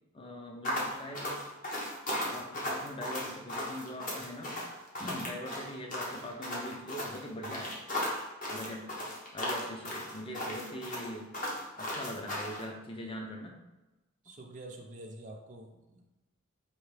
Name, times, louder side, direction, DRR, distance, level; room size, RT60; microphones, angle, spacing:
voice 1, 0.1-1.4 2.3-4.6 5.0-7.8 8.5-8.9 9.3-11.3 11.8-13.6 14.3-14.4, left 1 dB, 30° left, 2 dB, 0.5 m, -42 dB
sound 1, 0.6-12.6, left 1 dB, 45° left, 1.0 m, -36 dB
voice 2, 14.2-16.1, right 1 dB, 40° right, 1 dB, 0.5 m, -47 dB
4.7 x 2.6 x 3.3 m, 1.1 s
head